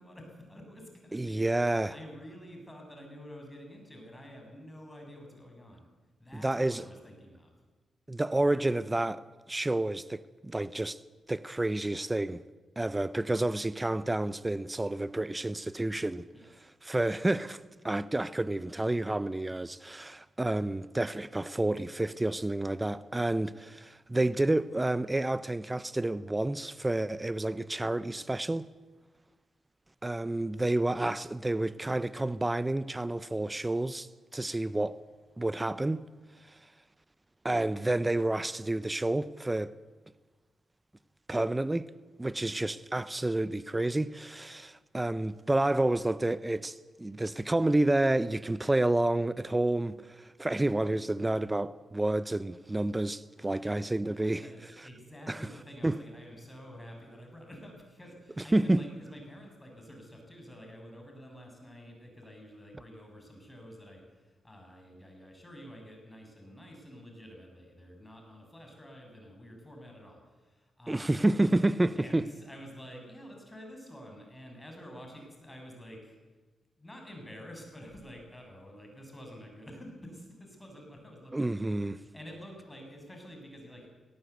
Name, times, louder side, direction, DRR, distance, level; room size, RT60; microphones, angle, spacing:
voice 1, 0.0-5.9 6.2-7.5 16.3-16.5 42.4-42.6 53.4-53.8 54.1-71.2 72.0-76.2 76.8-83.9, equal, 15° left, 6.8 m, -49 dB
voice 2, 1.1-1.9 6.3-6.8 8.1-9.2 9.5-11.0 11.3-12.4 12.8-16.3 16.8-28.7 30.0-35.0 35.4-36.0 36.5-36.6 37.4-39.7 41.3-41.9 42.2-54.5 54.8-54.9 55.3-55.5 55.8-56.0 58.4-58.8 70.9-72.3 81.3-82.0, right 2 dB, 20° right, 0.7 m, -29 dB
18.0 x 17.5 x 8.1 m
supercardioid pair, 50°, 0 cm